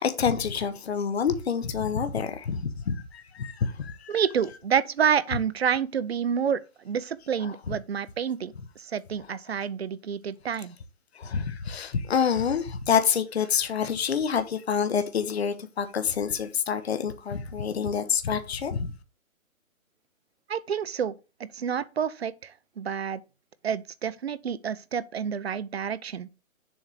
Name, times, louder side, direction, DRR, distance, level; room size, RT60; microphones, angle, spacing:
voice 1, 0.0-4.2 7.4-7.8 11.1-18.9, left 7 dB, 50° left, 0.9 m, -27 dB
voice 2, 4.1-10.8 20.5-21.1 21.4-23.2 23.6-26.3, right 7 dB, 50° right, 0.6 m, -28 dB
7.1 x 3.5 x 6.2 m
hypercardioid pair, 170°, 41 cm